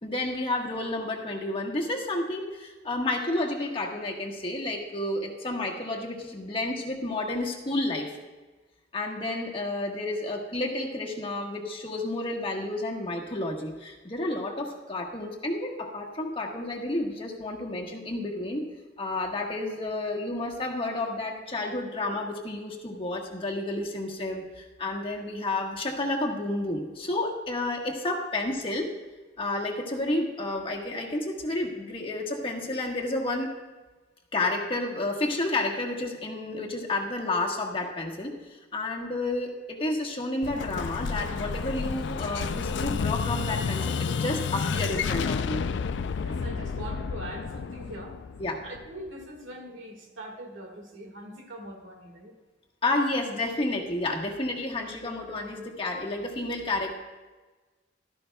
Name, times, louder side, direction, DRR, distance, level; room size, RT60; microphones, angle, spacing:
voice 1, 0.0-8.2 8.9-18.7 19.0-28.9 29.4-33.5 34.3-45.6 48.4-48.6 52.8-56.9, left 2 dB, 30° left, -1 dB, 1.3 m, -31 dB
Explosion, 40.4-49.1, left 5 dB, 65° left, 0.4 m, -30 dB
voice 2, 45.7-48.2 48.6-52.3, right 1 dB, 85° right, 3 dB, 1.8 m, -42 dB
15.5 x 13.0 x 2.2 m, 1.3 s
head